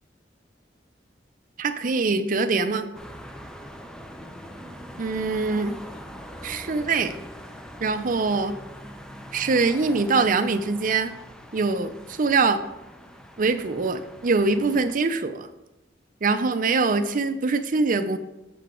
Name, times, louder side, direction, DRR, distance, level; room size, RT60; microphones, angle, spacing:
voice 1, 1.6-2.8 5.0-5.8 6.4-7.1 7.8-8.6 9.3-11.1 11.5-12.6 13.4-15.5 16.2-18.2, right 4 dB, 50° right, 9 dB, 0.5 m, -23 dB
sound 1, 2.9-14.9, equal, 5° left, 0.5 m, -43 dB
6.8 x 6.6 x 3.8 m, 0.95 s
head